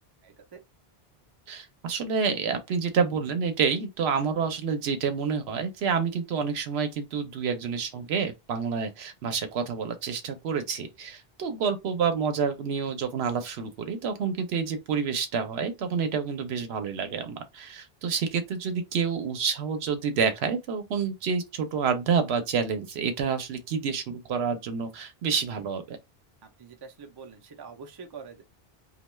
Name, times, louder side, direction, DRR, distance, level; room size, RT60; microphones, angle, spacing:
voice 1, 0.2-0.6 26.4-28.4, right 5 dB, 40° right, 0.4 m, -45 dB
voice 2, 1.5-26.0, right 6 dB, 90° right, 0.9 m, -28 dB
2.3 x 2.2 x 3.0 m
omnidirectional pair, 1.0 m